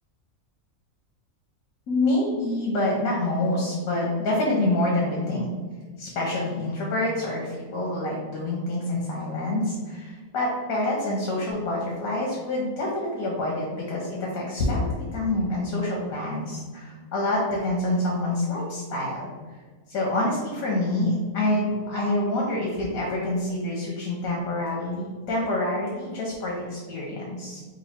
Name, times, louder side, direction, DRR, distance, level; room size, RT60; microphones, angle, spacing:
voice 1, 1.9-5.5 6.0-19.3 19.9-27.6, left 1 dB, 90° left, -3 dB, 1.2 m, -27 dB
3.1 x 2.5 x 4.2 m, 1.4 s
omnidirectional pair, 1.4 m